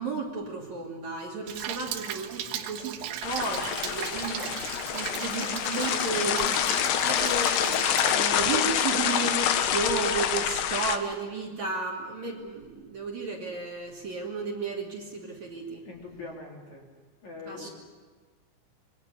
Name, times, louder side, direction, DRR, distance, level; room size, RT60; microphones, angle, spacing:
voice 1, 0.0-15.8 17.5-17.7, right 4 dB, 45° right, -1 dB, 3.6 m, -33 dB
Rain, 1.5-8.1, right 10 dB, 85° right, 3.6 m, -37 dB
sound 1, 3.2-11.0, left 9 dB, 70° left, 3.2 m, -27 dB
voice 2, 15.8-16.9 17.2-17.7, left 3 dB, 45° left, 0 dB, 4.0 m, -42 dB
27.0 x 23.5 x 7.0 m, 1.4 s
omnidirectional pair, 5.2 m